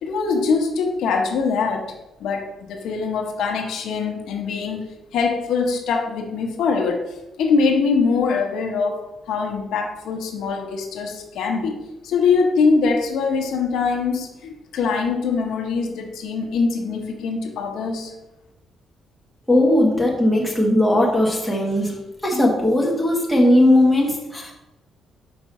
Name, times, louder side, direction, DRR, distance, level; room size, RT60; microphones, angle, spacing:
voice 1, 0.0-1.9 2.2-4.8 5.1-7.0 7.4-11.8 12.0-18.1, left 4 dB, 75° left, 3 dB, 1.0 m, -23 dB
voice 2, 19.5-22.0 22.2-24.5, left 1 dB, 5° left, -2 dB, 1.4 m, -18 dB
5.2 x 4.6 x 5.4 m, 0.95 s
cardioid pair, 150°, 0 cm